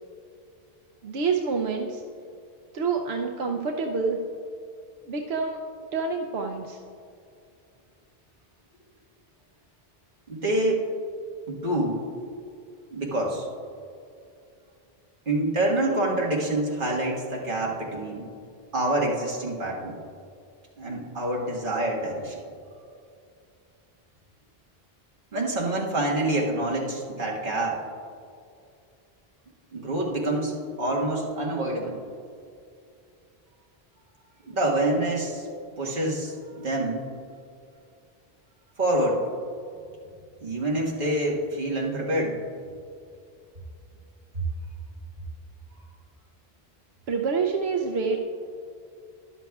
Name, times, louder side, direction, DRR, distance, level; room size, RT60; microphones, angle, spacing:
voice 1, 1.0-2.0 2.7-4.2 5.1-5.6 5.9-6.8 47.1-48.2, right 5 dB, 85° right, 2 dB, 0.9 m, -27 dB
voice 2, 10.3-10.8 11.5-12.1 12.9-13.5 15.2-18.3 18.7-20.0 20.8-22.4 25.3-27.8 29.7-32.0 34.4-35.5 35.8-37.1 38.8-39.2 40.4-42.4 44.3-44.4, right 1 dB, 55° right, -2 dB, 1.7 m, -26 dB
13.0 x 11.0 x 2.3 m, 2.4 s
omnidirectional pair, 1.0 m